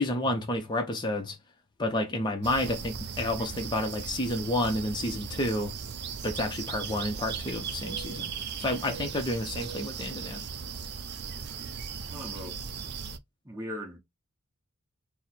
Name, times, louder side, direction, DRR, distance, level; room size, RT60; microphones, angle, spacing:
voice 1, 0.0-1.4 1.8-5.7 6.2-8.3 8.6-10.4, left 1 dB, 20° left, 0.5 m, -30 dB
sound 1, 2.4-13.2, right 6 dB, 45° right, 0.5 m, -38 dB
voice 2, 12.1-12.6 13.4-14.0, equal, 15° right, 1.2 m, -39 dB
4.2 x 2.0 x 4.3 m
head